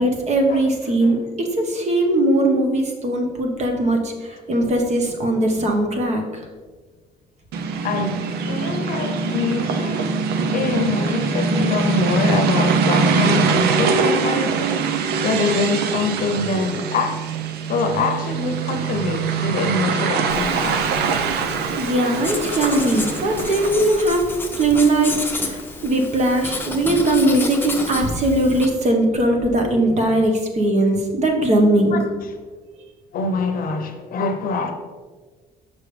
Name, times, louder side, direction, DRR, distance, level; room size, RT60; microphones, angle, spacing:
voice 1, 0.0-4.1 4.5-6.2 21.8-24.2 24.6-25.1 25.4-32.0, right 1 dB, 40° right, 1.2 m, -19 dB
sound 1, 7.5-24.0, right 5 dB, 75° right, 0.6 m, -23 dB
voice 2, 7.8-10.2 10.5-14.7 15.2-17.2 17.7-20.8 31.9-32.3 33.1-34.7, left 3 dB, 55° left, 0.8 m, -24 dB
Writing, 20.3-28.7, left 2 dB, 10° left, 0.8 m, -31 dB
6.3 x 5.5 x 3.3 m
cardioid pair, 110°, 17 cm